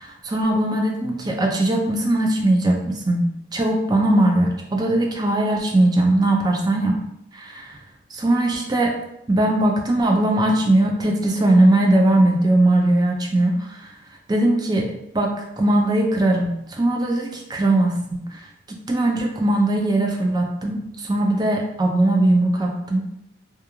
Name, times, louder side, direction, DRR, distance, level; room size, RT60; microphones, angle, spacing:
voice 1, 0.0-7.0 7.3-7.7 8.1-8.9 9.3-13.9 14.3-18.4 18.9-23.1, right 1 dB, 20° right, 1 dB, 0.3 m, -20 dB
2.3 x 2.3 x 2.9 m, 0.81 s
head